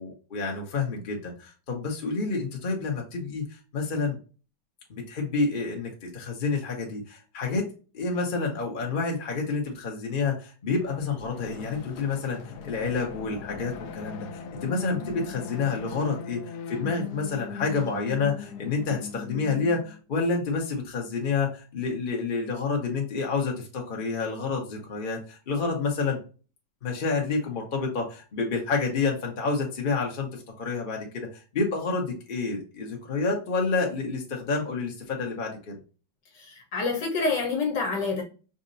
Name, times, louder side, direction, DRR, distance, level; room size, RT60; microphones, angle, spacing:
voice 1, 0.0-3.4 3.7-4.2 4.9-7.7 7.9-16.4 16.7-26.2 26.8-31.3 31.5-35.8, left 4 dB, 35° left, 0.8 m, -29 dB
sound 1, 10.8-20.0, left 6 dB, 80° left, 0.9 m, -39 dB
voice 2, 36.3-38.2, left 4 dB, 60° left, 1.5 m, -28 dB
5.3 x 2.6 x 2.6 m
omnidirectional pair, 2.4 m